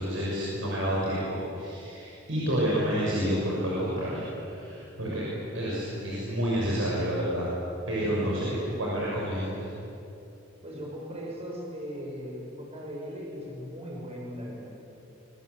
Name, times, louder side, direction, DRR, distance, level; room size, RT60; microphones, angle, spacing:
voice 1, 0.0-5.2 5.5-7.5 7.9-8.5 8.8-9.7, equal, 85° right, -6 dB, 6.4 m, -29 dB
voice 2, 8.1-8.8 10.6-14.7, equal, 35° right, -2 dB, 6.5 m, -38 dB
24.5 x 24.0 x 8.2 m, 2.8 s
head